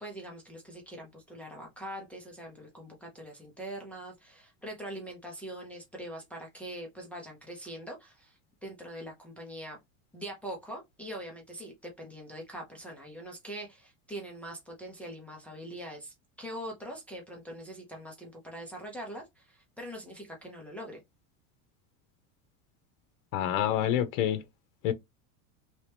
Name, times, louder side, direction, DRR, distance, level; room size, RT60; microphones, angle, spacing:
voice 1, 0.0-9.8 10.1-21.0, right 1 dB, 5° left, 0.5 m, -43 dB
voice 2, 23.3-24.4 24.8-24.9, left 11 dB, 70° left, 0.8 m, -27 dB
3.2 x 2.8 x 3.2 m
cardioid pair, 170°, 40 cm